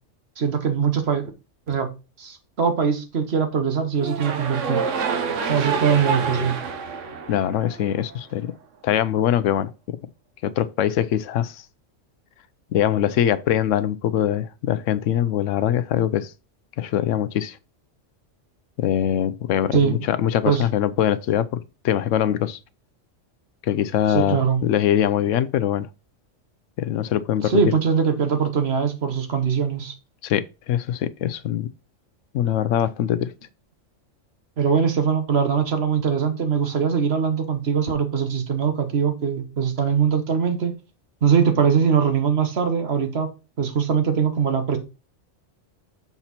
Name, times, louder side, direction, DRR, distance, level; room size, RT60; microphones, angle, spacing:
voice 1, 0.4-1.3 1.7-1.9 2.2-4.8 5.5-6.6 19.7-20.0 20.4-20.6 24.1-24.6 27.4-29.9 34.6-40.7 41.2-43.3 43.6-44.8, right 6 dB, 55° right, 1.3 m, -22 dB
sound 1, 4.0-8.2, right 5 dB, 75° right, 1.3 m, -27 dB
voice 2, 7.3-8.5 8.8-10.0 10.4-11.6 12.7-16.3 16.8-17.6 18.8-22.6 23.6-25.9 26.8-27.5 30.2-31.7 32.3-33.3, left 10 dB, 80° left, 0.9 m, -23 dB
6.9 x 4.3 x 4.1 m
omnidirectional pair, 1.3 m